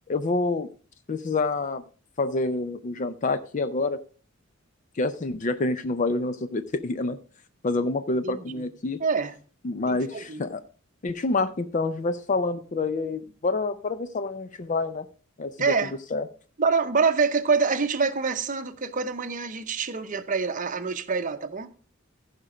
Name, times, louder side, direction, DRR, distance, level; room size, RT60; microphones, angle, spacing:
voice 1, 0.1-0.7 1.1-1.8 2.2-4.0 5.0-7.2 7.6-9.0 9.6-10.6 11.0-15.1 15.4-15.5 16.1-16.2, left 3 dB, 35° left, 0.5 m, -27 dB
voice 2, 8.2-8.6 9.0-9.3 9.9-10.4 15.6-15.9 16.6-21.7, right 5 dB, 40° right, 0.7 m, -26 dB
15.0 x 5.1 x 4.9 m
head